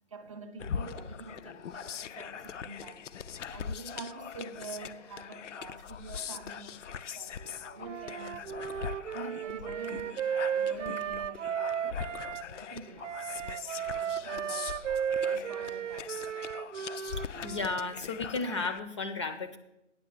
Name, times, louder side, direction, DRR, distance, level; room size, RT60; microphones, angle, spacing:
voice 1, 0.1-3.1 3.5-8.5 8.9-14.8 15.2-16.3, right 3 dB, 25° right, 0.6 m, -47 dB
sound 1, 0.6-18.8, left 7 dB, 75° left, 0.6 m, -41 dB
Wind instrument woodwind instrument, 7.8-12.5 13.0-17.9, right 8 dB, 75° right, 0.5 m, -34 dB
voice 2, 17.1-19.6, left 3 dB, 25° left, 0.5 m, -34 dB
9.4 x 5.6 x 7.1 m
hypercardioid pair, 150°, 37 cm